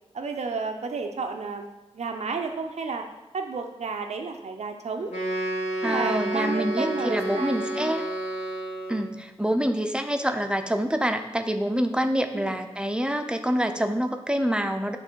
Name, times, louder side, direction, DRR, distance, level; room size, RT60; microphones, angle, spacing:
voice 1, 0.1-1.7 1.9-3.1 3.3-5.1 5.8-8.0 12.3-12.6, right 4 dB, 80° right, 4 dB, 0.7 m, -31 dB
Wind instrument woodwind instrument, 5.1-9.2, right 1 dB, 75° left, 1.9 m, -30 dB
voice 2, 5.8-8.1 8.9-15.0, equal, 10° right, 6 dB, 0.6 m, -26 dB
9.8 x 3.3 x 4.5 m, 1.0 s
wide cardioid pair, 70°, 11 cm